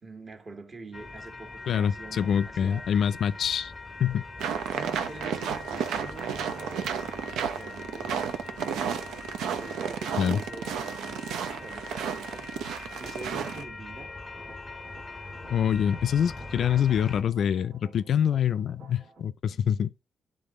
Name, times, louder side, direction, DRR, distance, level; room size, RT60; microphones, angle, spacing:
voice 1, 0.0-2.9 4.7-6.9 7.5-9.2 9.6-12.4 13.0-14.1 16.6-16.9, right 3 dB, 35° right, 1.4 m, -45 dB
sound 1, 0.9-17.2, left 3 dB, 15° left, 0.6 m, -42 dB
voice 2, 1.7-3.7 4.0-4.2 10.2-10.4 15.5-19.9, left 8 dB, 60° left, 0.3 m, -25 dB
sound 2, 4.4-13.6, right 7 dB, 85° right, 0.6 m, -33 dB
sound 3, 9.5-19.2, right 4 dB, 65° right, 1.4 m, -55 dB
9.6 x 3.7 x 3.7 m
cardioid pair, 90°, 0 cm